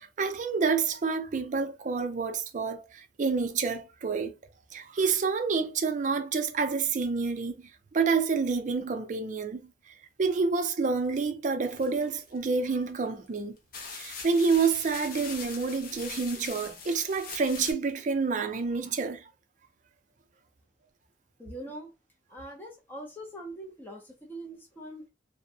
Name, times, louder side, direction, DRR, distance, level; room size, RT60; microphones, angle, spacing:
voice 1, 0.0-4.3 4.7-7.6 7.9-9.6 9.9-13.6 13.9-19.3, right 4 dB, 45° right, 0.4 m, -28 dB
sound 1, 11.7-12.6 13.3-13.4 13.7-17.7, left 5 dB, 50° left, 0.6 m, -42 dB
voice 2, 21.4-21.9 22.3-25.1, right 1 dB, 10° left, 0.5 m, -42 dB
2.5 x 2.1 x 2.6 m
head